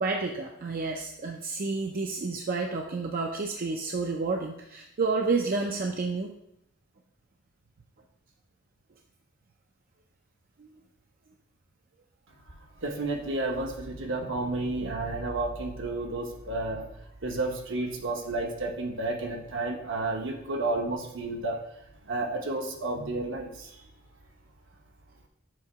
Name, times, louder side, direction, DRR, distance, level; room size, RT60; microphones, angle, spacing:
voice 1, 0.0-6.3 10.6-10.7, right 3 dB, 45° right, 1 dB, 0.5 m, -30 dB
voice 2, 12.8-16.8 17.2-21.6 22.1-23.7, right 2 dB, 65° right, 2 dB, 1.0 m, -31 dB
7.5 x 2.9 x 4.7 m, 0.78 s
head